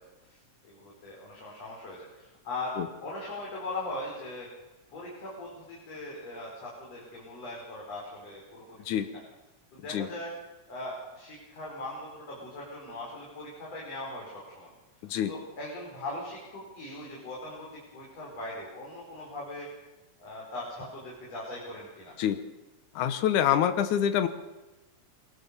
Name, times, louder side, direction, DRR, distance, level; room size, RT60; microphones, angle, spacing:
voice 1, 0.0-2.7 3.0-4.5 4.9-9.2 9.7-10.3 10.7-14.7 15.3-19.7 20.2-22.1, left 2 dB, 60° left, -4 dB, 6.4 m, -40 dB
voice 2, 23.0-24.3, left 10 dB, 85° left, 10 dB, 2.6 m, -26 dB
26.5 x 23.0 x 7.1 m, 1.1 s
omnidirectional pair, 3.4 m